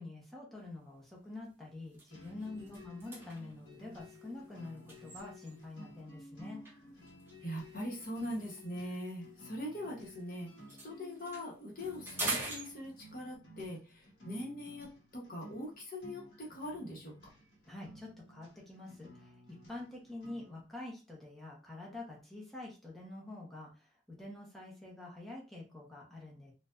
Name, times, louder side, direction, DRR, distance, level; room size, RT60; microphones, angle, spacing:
voice 1, 0.0-6.6 17.6-19.4 19.7-26.5, left 2 dB, ahead, -3 dB, 1.0 m, -47 dB
sound 1, 0.7-0.9 1.4-1.5 1.8-5.8 6.6-10.2 10.5-13.3, right 2 dB, 15° right, 1.3 m, -44 dB
sound 2, 2.1-20.6, left 1 dB, 85° left, 1.4 m, -55 dB
voice 2, 7.4-10.5 10.8-17.1, left 1 dB, 50° left, -1 dB, 1.2 m, -42 dB
4.4 x 2.5 x 2.6 m, 0.31 s
head